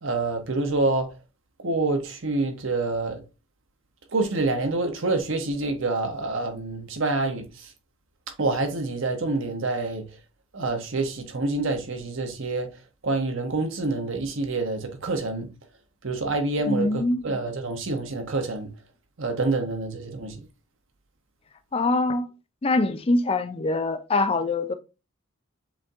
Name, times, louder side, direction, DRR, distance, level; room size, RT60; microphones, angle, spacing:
voice 1, 0.0-1.1 1.6-3.2 4.1-7.7 8.4-10.0 10.5-12.7 13.0-15.5 16.0-18.7 19.2-20.5, right 3 dB, 60° right, 0.9 m, -27 dB
voice 2, 16.7-17.2 21.7-22.3 22.6-24.7, left 2 dB, 25° left, 0.4 m, -24 dB
7.0 x 2.7 x 2.4 m
head